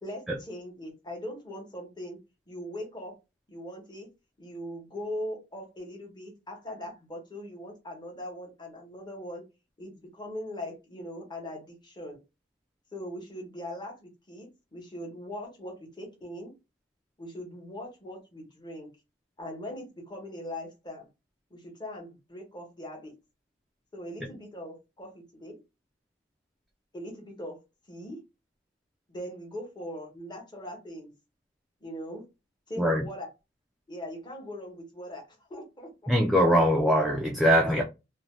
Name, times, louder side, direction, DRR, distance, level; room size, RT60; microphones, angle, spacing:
voice 1, 0.0-2.2 2.5-3.1 3.5-4.1 4.4-9.4 9.8-12.2 12.9-16.5 17.2-18.9 19.4-21.1 21.5-23.1 23.9-25.6 26.9-27.6 27.9-28.2 29.1-31.1 31.8-32.2 32.7-33.3 33.9-35.2 35.5-36.1 37.6-37.8, left 1 dB, 25° left, 1.0 m, -40 dB
voice 2, 36.1-37.8, equal, ahead, 0.3 m, -22 dB
2.6 x 2.2 x 3.1 m
head